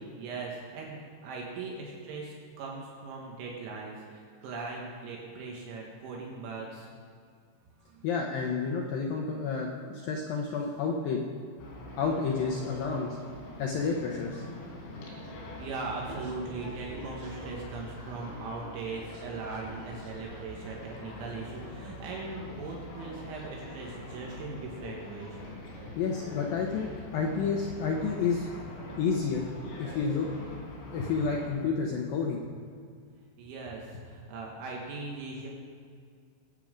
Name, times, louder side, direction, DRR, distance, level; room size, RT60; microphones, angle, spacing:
voice 1, 0.2-6.9 7.9-8.1 15.6-25.4 33.4-35.5, right 3 dB, 75° right, -2 dB, 3.8 m, -39 dB
voice 2, 8.0-11.2 12.0-13.2 13.6-14.4 26.0-28.5 29.0-29.5 29.8-30.3 30.9-32.4, left 5 dB, 90° left, 0 dB, 2.0 m, -30 dB
sound 1, 11.6-31.5, left 1 dB, 70° left, 5.6 m, -44 dB
sound 2, 16.0-18.1 18.9-20.9 21.2-22.2 22.5-23.2, right 2 dB, 50° right, 3.0 m, -50 dB
22.0 x 8.6 x 5.1 m, 2.2 s
omnidirectional pair, 5.5 m